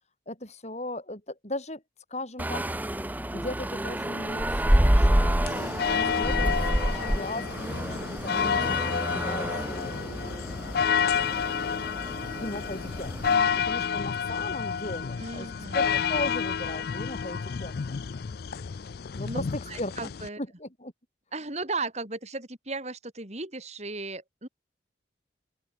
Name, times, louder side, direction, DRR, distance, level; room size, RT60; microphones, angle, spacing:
voice 1, 0.3-1.8 2.1-2.7 3.3-10.3 12.3-13.1 13.7-17.7 19.2-20.1 20.4-20.9, left 1 dB, 35° left, 5.8 m, -37 dB
sound 1, 2.4-13.3, right 1 dB, 10° right, 0.9 m, -28 dB
sound 2, 5.5-20.3, left 7 dB, 55° left, 0.4 m, -30 dB
voice 2, 13.3-13.6 15.2-15.8 19.2-20.4 21.3-24.5, right 3 dB, 35° right, 4.5 m, -36 dB
open air
head